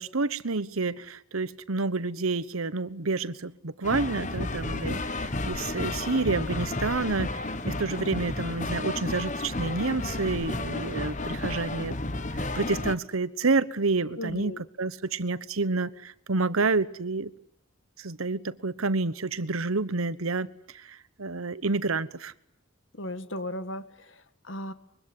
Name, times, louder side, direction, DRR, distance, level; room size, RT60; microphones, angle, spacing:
voice 1, 0.0-17.3 18.0-22.3, right 3 dB, 85° right, 1.2 m, -29 dB
sound 1, 3.8-13.0, left 2 dB, 35° left, 1.3 m, -32 dB
voice 2, 14.2-14.6 22.9-24.7, left 1 dB, 65° left, 1.9 m, -36 dB
25.0 x 23.0 x 9.8 m
head